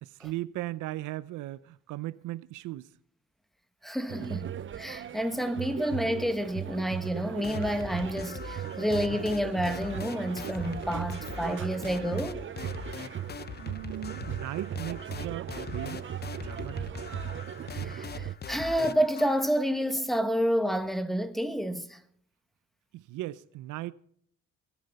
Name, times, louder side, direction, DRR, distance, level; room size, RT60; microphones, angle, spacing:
voice 1, 0.0-2.9 13.6-16.1 16.4-16.8 22.9-23.9, right 16 dB, 85° right, 0.6 m, -37 dB
voice 2, 3.8-4.5 4.8-12.5 17.7-22.0, equal, ahead, 1.4 m, -29 dB
sound 1, 4.1-18.3, right 10 dB, 40° right, 0.6 m, -38 dB
sound 2, 7.4-19.5, left 6 dB, 35° left, 0.7 m, -42 dB
19.0 x 10.5 x 4.1 m
cardioid pair, 90°, 30 cm